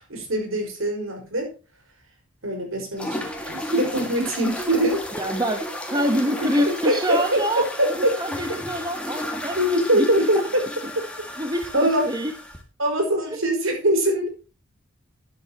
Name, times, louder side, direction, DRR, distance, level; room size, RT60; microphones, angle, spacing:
voice 1, 0.0-1.5 2.4-5.0 6.1-6.2 6.7-8.1 9.6-10.6 11.7-12.1 12.8-14.3, right 1 dB, 70° right, 2 dB, 5.1 m, -23 dB
sound 1, 3.0-12.6, left 1 dB, 5° left, 1.9 m, -33 dB
voice 2, 5.2-5.6 5.9-7.6 8.2-10.3 11.4-12.3, equal, 20° right, 6 dB, 1.1 m, -26 dB
12.0 x 11.5 x 2.9 m, 0.32 s
head